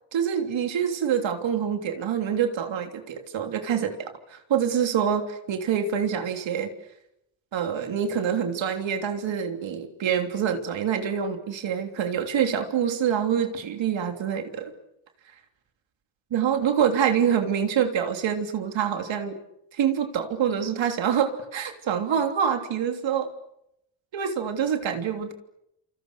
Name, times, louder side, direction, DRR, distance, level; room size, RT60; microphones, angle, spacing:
voice 1, 0.1-6.7 7.5-14.7 16.3-19.4 19.7-23.3 24.1-25.3, right 8 dB, 75° right, 5 dB, 3.3 m, -26 dB
30.0 x 28.0 x 6.7 m, 0.81 s
cardioid pair, 120°, 45 cm